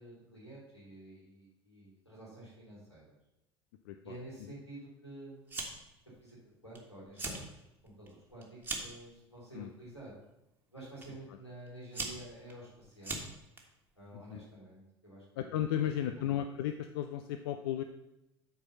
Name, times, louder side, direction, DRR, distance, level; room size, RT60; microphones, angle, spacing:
voice 1, 0.0-3.1 4.0-5.7 6.2-6.4 6.6-10.1 10.7-13.2 13.9-15.5 15.9-16.3, right 1 dB, 90° left, -6 dB, 3.4 m, -50 dB
voice 2, 3.9-4.2 9.5-9.7 14.1-14.4 15.4-17.8, left 10 dB, 60° left, 8 dB, 0.5 m, -34 dB
Fire, 5.5-6.0 6.3-6.8 7.1-7.4 7.9-9.0 9.8-10.1 11.0-11.1 11.7-13.6, right 2 dB, 15° right, 1.5 m, -40 dB
8.4 x 4.7 x 5.4 m, 0.88 s
figure-of-eight pair, 70°, 14 cm